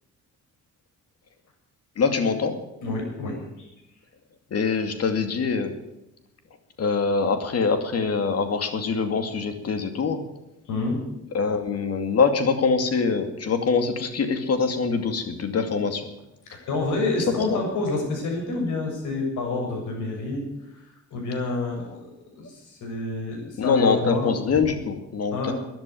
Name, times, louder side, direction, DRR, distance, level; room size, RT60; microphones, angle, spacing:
voice 1, 2.0-2.6 4.5-5.7 6.8-10.2 11.3-16.1 17.5-17.6 23.6-25.5, left 5 dB, 55° left, 8 dB, 2.5 m, -24 dB
voice 2, 2.8-3.7 10.7-11.0 16.5-20.4 20.7-20.8 21.1-22.1 22.3-24.3 25.3-25.5, left 3 dB, 80° left, 1 dB, 7.0 m, -28 dB
13.0 x 10.5 x 9.4 m, 0.88 s
cardioid pair, 90°, 30 cm